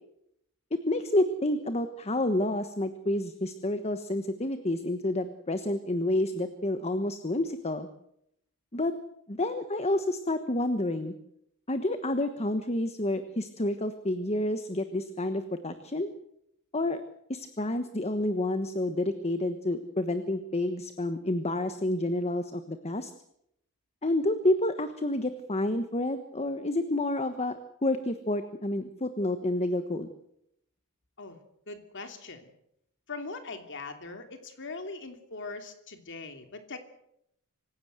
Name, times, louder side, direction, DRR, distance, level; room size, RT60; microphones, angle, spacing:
voice 1, 0.7-7.9 8.7-8.9 9.3-11.1 11.7-16.1 16.7-17.0 17.3-23.1 24.0-30.1, left 1 dB, 30° left, 10 dB, 1.2 m, -29 dB
voice 2, 31.7-32.5 33.1-36.8, left 3 dB, 55° left, 7 dB, 2.9 m, -41 dB
26.0 x 16.0 x 8.0 m, 0.78 s
head